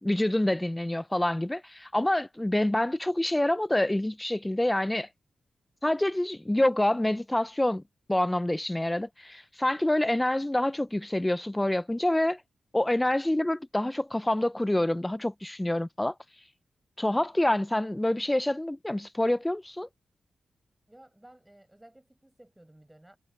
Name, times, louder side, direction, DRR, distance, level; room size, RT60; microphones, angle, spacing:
voice 1, 0.0-5.1 5.8-7.8 8.1-12.4 12.7-16.1 17.0-19.9, left 1 dB, 10° left, 0.5 m, -27 dB
voice 2, 20.9-23.2, right 1 dB, 10° right, 7.3 m, -55 dB
wide cardioid pair, 95°, 0 cm